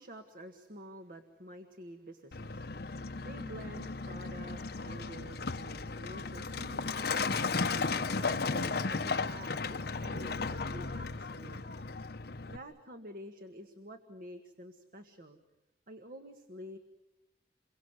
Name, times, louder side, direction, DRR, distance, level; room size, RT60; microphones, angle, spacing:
voice 1, 0.0-3.0 3.2-7.2 7.8-11.7 12.5-15.4 15.9-16.8, equal, 55° right, 6 dB, 1.7 m, -49 dB
Truck, 2.3-12.6, left 4 dB, 65° left, 1.0 m, -35 dB
28.5 x 23.0 x 8.2 m, 0.92 s
head